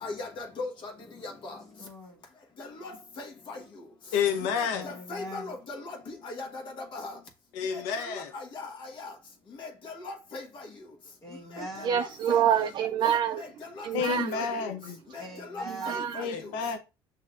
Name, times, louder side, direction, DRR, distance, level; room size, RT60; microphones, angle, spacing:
voice 1, 0.0-0.9 1.2-1.6 2.6-2.9 3.2-3.6 4.8-6.0 6.2-6.6 6.9-7.2 8.3-8.7 9.0-9.1 9.6-10.4 13.8-13.9 14.3-14.4 15.5-16.2, left 3 dB, 55° left, 1.2 m, -38 dB
voice 2, 1.8-2.2 4.3-5.6 11.2-12.1 15.2-16.1, equal, 35° left, 1.2 m, -42 dB
voice 3, 4.1-4.9 7.5-8.3 13.9-15.0 16.2-16.8, left 7 dB, 85° left, 0.6 m, -30 dB
voice 4, 11.8-13.4 13.8-14.4 15.8-16.2, right 9 dB, 50° right, 0.3 m, -26 dB
6.5 x 2.8 x 2.4 m
supercardioid pair, 90°, 10 cm